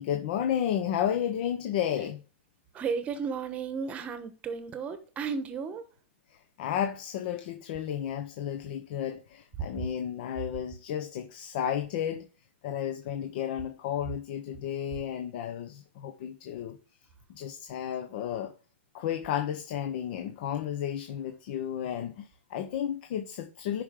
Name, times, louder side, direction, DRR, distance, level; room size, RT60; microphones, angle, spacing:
voice 1, 0.0-2.2 6.3-12.3 12.6-16.8 17.3-18.5 18.9-23.8, left 9 dB, 50° left, 0.9 m, -32 dB
voice 2, 2.7-5.8, right 5 dB, 20° right, 1.1 m, -34 dB
10.5 x 5.1 x 3.8 m
hypercardioid pair, 145°, 7 cm